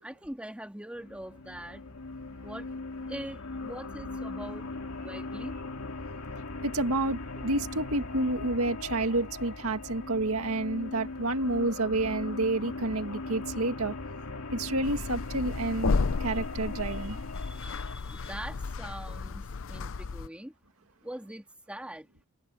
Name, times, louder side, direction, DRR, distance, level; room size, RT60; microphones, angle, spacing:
voice 1, 0.0-1.8 2.4-2.7 3.1-4.7 5.0-5.5 17.3-20.5 21.0-22.1, right 1 dB, 5° right, 2.8 m, -42 dB
sound 1, 1.0-18.0, left 3 dB, 80° left, 2.4 m, -39 dB
voice 2, 6.6-13.9 14.5-17.2, right 2 dB, 75° right, 2.0 m, -29 dB
sound 2, 14.8-20.3, left 4 dB, 65° left, 0.6 m, -33 dB
head